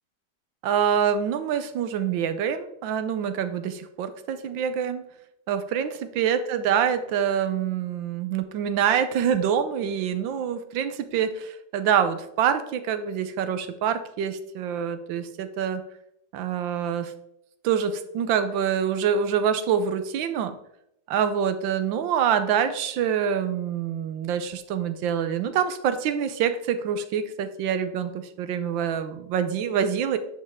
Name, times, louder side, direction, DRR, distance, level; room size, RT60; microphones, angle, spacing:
voice 1, 0.6-5.0 5.5-15.8 16.3-17.1 17.6-20.6 21.1-30.2, right 8 dB, 80° right, 10 dB, 1.4 m, -26 dB
10.5 x 5.5 x 3.6 m, 0.79 s
omnidirectional pair, 2.1 m